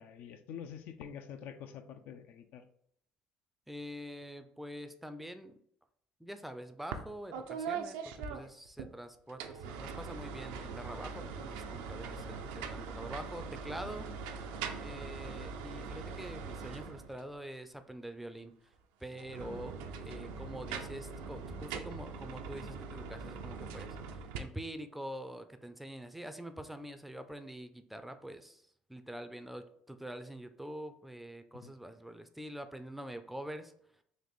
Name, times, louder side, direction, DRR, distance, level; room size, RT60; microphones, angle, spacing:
voice 1, 0.0-2.6 12.2-12.4 19.4-19.7 31.5-31.7, left 8 dB, 65° left, 8 dB, 0.4 m, -47 dB
voice 2, 3.7-5.5 6.2-14.1 14.8-18.5 19.0-19.7 20.1-28.6 28.9-33.7, right 1 dB, 5° right, 9 dB, 0.4 m, -45 dB
sound 1, 6.9-7.1 7.3-8.9 9.3-17.3 19.1-24.4, right 5 dB, 85° right, 0.4 m, -42 dB
4.0 x 2.5 x 3.5 m, 0.66 s
supercardioid pair, 85°, 3 cm